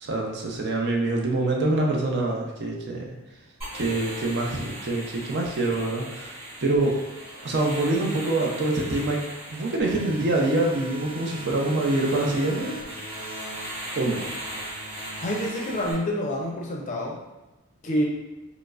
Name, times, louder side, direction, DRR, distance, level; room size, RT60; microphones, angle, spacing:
voice 1, 0.0-3.0 3.7-6.4 6.6-7.0 7.4-9.2 9.5-12.8 14.0-14.6, right 2 dB, 50° right, 0 dB, 0.5 m, -25 dB
sound 1, 3.6-15.9, right 1 dB, 25° right, 1.0 m, -38 dB
voice 2, 15.2-17.2 17.8-18.1, equal, 35° left, -1 dB, 0.5 m, -27 dB
4.7 x 2.0 x 2.4 m, 1.1 s
head